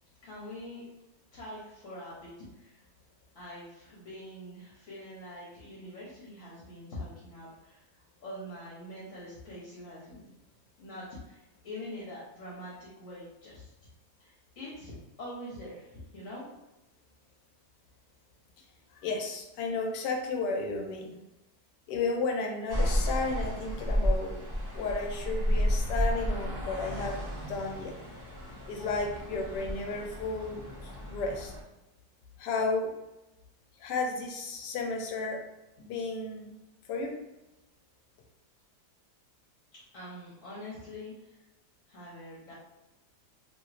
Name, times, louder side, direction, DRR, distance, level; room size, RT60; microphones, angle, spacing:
voice 1, 0.2-0.9 1.3-2.3 2.6-2.8 3.3-7.8 8.2-10.3 10.8-13.7 14.2-16.5 39.9-41.1 41.9-42.5, left 1 dB, 55° left, -8 dB, 1.2 m, -44 dB
voice 2, 19.0-21.2 21.9-24.3 24.7-27.2 27.5-27.9 28.7-30.6 31.1-31.5 32.4-32.9 33.8-35.4 35.8-36.5 36.9-37.2, left 3 dB, 85° left, 2 dB, 1.2 m, -33 dB
sound 1, 22.7-31.6, equal, 20° right, 0.6 m, -32 dB
3.0 x 2.9 x 2.4 m, 0.97 s
omnidirectional pair, 1.8 m